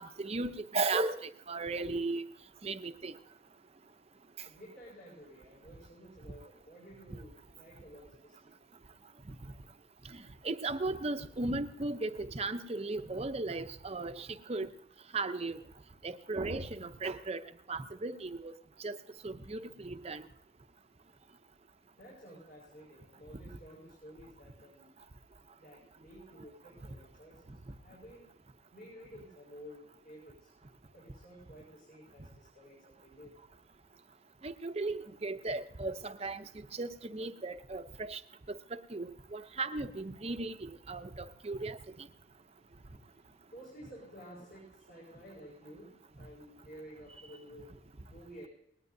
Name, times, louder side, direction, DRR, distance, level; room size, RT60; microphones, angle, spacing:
voice 1, 0.0-2.2 2.6-3.1 10.4-14.7 15.1-15.6 16.0-17.4 17.7-18.5 18.8-19.0 19.2-20.2 34.4-36.4 36.8-38.2 38.9-40.6 40.9-41.8, right 3 dB, 30° right, 0.6 m, -36 dB
voice 2, 4.4-8.8 21.9-24.9 25.6-27.4 27.8-28.3 28.7-30.5 30.9-33.3 42.3-48.5, equal, 50° left, 5.2 m, -53 dB
20.0 x 18.5 x 2.7 m
head